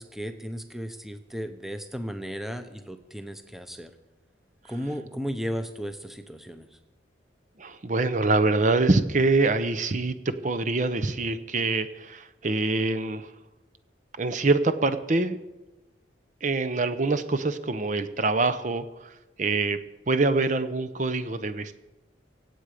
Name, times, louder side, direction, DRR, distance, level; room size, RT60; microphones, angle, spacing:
voice 1, 0.0-3.9 4.7-6.8, equal, ahead, 8 dB, 0.7 m, -35 dB
voice 2, 7.6-13.3 14.2-15.4 16.4-19.1 19.4-19.8 20.1-21.8, right 3 dB, 40° right, 11 dB, 0.7 m, -25 dB
24.5 x 8.2 x 5.0 m, 1.1 s
head